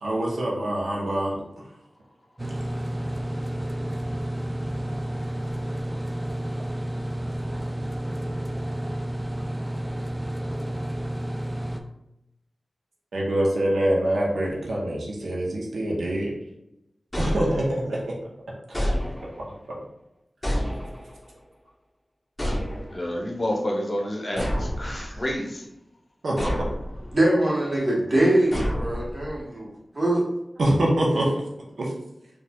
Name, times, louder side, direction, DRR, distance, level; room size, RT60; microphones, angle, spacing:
voice 1, 0.0-1.4 13.1-16.3 17.2-18.1 18.7-18.9 19.7-19.8 26.2-26.5 30.6-31.3 31.8-31.9, right 1 dB, 90° right, -3 dB, 0.7 m, -25 dB
sound 1, 2.4-11.8, right 1 dB, 15° right, 0.4 m, -30 dB
sound 2, 17.1-18.0 18.7-19.6 20.4-21.3 22.4-23.2 24.4-25.4 26.4-27.1 28.5-29.4, equal, 15° left, 1.0 m, -29 dB
voice 2, 22.9-25.7, left 1 dB, 45° left, -1 dB, 0.8 m, -29 dB
voice 3, 27.1-30.3, right 1 dB, 40° right, -4 dB, 1.2 m, -23 dB
4.1 x 2.4 x 2.2 m, 0.86 s
cardioid pair, 50°, 0 cm